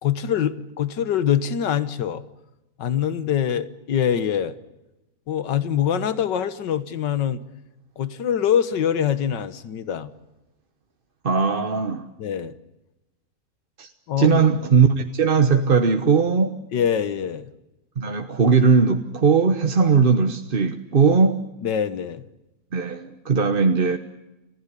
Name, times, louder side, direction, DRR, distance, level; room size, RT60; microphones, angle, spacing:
voice 1, 0.0-2.2 2.8-4.6 5.3-7.4 8.0-10.1 12.2-12.6 14.1-14.5 16.7-17.5 21.6-22.2, left 9 dB, 85° left, 14 dB, 1.9 m, -24 dB
voice 2, 11.2-12.1 13.8-13.9 14.2-16.6 18.0-21.4 22.7-24.0, right 5 dB, 35° right, 6 dB, 1.1 m, -19 dB
29.5 x 15.5 x 9.9 m, 0.97 s
omnidirectional pair, 1.8 m